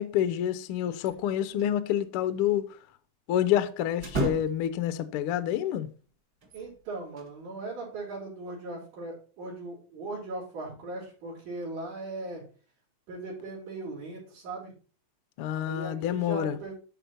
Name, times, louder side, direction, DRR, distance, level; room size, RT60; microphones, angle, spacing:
voice 1, 0.0-2.7 3.3-5.9 15.4-16.6, left 11 dB, 80° left, 1.2 m, -28 dB
sound 1, 1.0-1.7 2.0-2.1 4.0-4.8 6.4-7.3, right 1 dB, 35° right, 2.2 m, -34 dB
voice 2, 6.5-12.4 13.1-14.7 15.7-16.7, right 2 dB, 75° right, 5.3 m, -38 dB
12.5 x 4.5 x 4.4 m
omnidirectional pair, 3.5 m